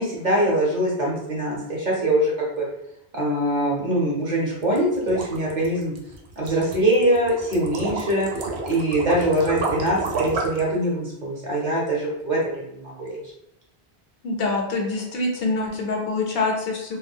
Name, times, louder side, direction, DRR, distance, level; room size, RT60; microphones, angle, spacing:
voice 1, 0.0-2.6 3.1-5.9 6.4-8.3 8.7-13.2, right 1 dB, 50° right, -3 dB, 0.8 m, -23 dB
sound 1, 4.6-10.7, right 3 dB, 80° right, 0.9 m, -30 dB
voice 2, 14.2-17.0, left 3 dB, 70° left, 1 dB, 0.8 m, -25 dB
2.2 x 2.1 x 3.4 m, 0.80 s
omnidirectional pair, 1.1 m